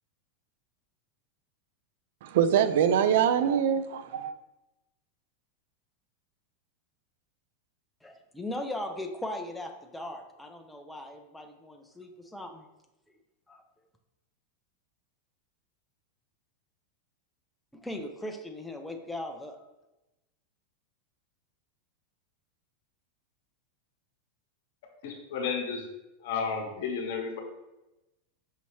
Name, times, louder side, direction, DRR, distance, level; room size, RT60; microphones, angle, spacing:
voice 1, 2.2-4.3, right 8 dB, 70° right, 0.3 m, -24 dB
voice 2, 8.0-12.7 13.5-13.6 17.7-19.6, left 1 dB, 5° left, 0.4 m, -38 dB
voice 3, 25.0-25.8 26.2-27.4, left 5 dB, 65° left, 0.9 m, -32 dB
5.6 x 2.7 x 3.1 m
supercardioid pair, 140°, 0 cm